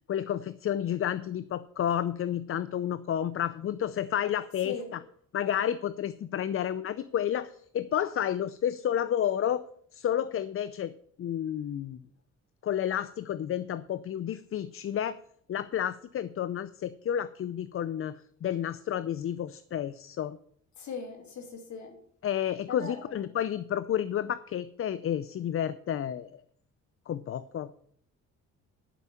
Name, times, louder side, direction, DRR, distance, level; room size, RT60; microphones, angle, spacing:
voice 1, 0.1-4.8 5.3-9.6 9.9-10.9 11.2-12.0 12.6-15.2 15.5-20.4 22.2-26.4 27.1-27.8, left 10 dB, 45° left, 15 dB, 0.5 m, -31 dB
voice 2, 20.8-22.0 22.7-23.1, left 5 dB, 70° left, 2 dB, 2.8 m, -39 dB
11.0 x 5.5 x 7.4 m, 0.62 s
cardioid pair, 90°, 30 cm